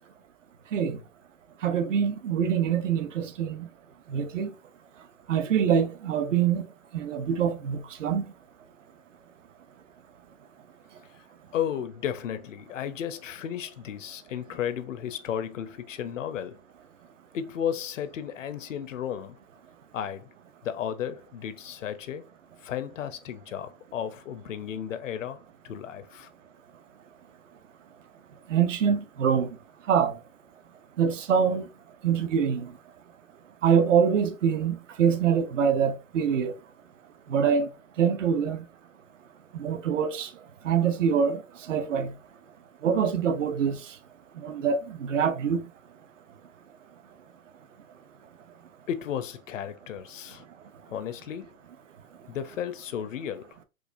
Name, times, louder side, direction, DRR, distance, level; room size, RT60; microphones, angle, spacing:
voice 1, 1.6-3.6 4.1-4.5 5.3-6.6 6.9-8.2 28.5-29.5 29.9-30.1 31.0-31.6 32.0-32.7 33.6-36.5 37.3-37.7 38.0-38.6 39.6-40.3 40.7-41.4 41.7-42.1 42.8-43.8 44.4-44.8 45.1-45.6, right 7 dB, 55° right, 0.7 m, -24 dB
voice 2, 11.5-16.6 17.3-19.4 19.9-20.3 20.6-22.3 22.6-26.3 48.9-50.4 50.9-51.5 52.3-53.6, left 9 dB, 60° left, 0.6 m, -34 dB
4.7 x 2.4 x 2.5 m
hypercardioid pair, 150°, 44 cm